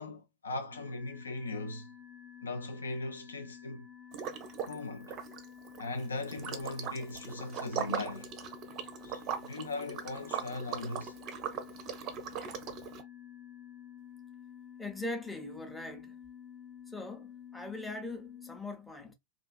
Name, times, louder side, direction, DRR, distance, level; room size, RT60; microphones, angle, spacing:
voice 1, 0.0-1.9 2.4-3.9 4.6-5.1 5.8-8.3 9.0-11.2, left 2 dB, 75° left, 0.4 m, -39 dB
sound 1, 0.7-18.6, left 8 dB, 20° left, 1.0 m, -51 dB
Liquid, 4.1-4.8 5.0-13.0, right 8 dB, 35° right, 0.5 m, -39 dB
voice 2, 14.8-16.2 16.9-19.1, left 2 dB, 5° left, 0.6 m, -41 dB
2.4 x 2.4 x 2.3 m
figure-of-eight pair, 90°, 0 cm